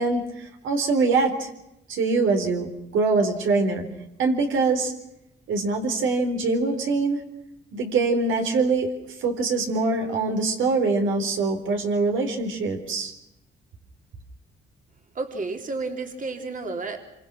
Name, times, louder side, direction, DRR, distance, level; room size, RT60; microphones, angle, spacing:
voice 1, 0.0-1.5 1.9-2.7 2.9-3.8 4.2-4.9 5.5-7.2 7.7-8.9 9.2-13.1, right 3 dB, 80° right, 4 dB, 4.1 m, -23 dB
voice 2, 15.1-17.0, right 3 dB, 40° right, 4 dB, 3.1 m, -31 dB
26.0 x 25.0 x 6.3 m, 0.88 s
cardioid pair, 90°, 20 cm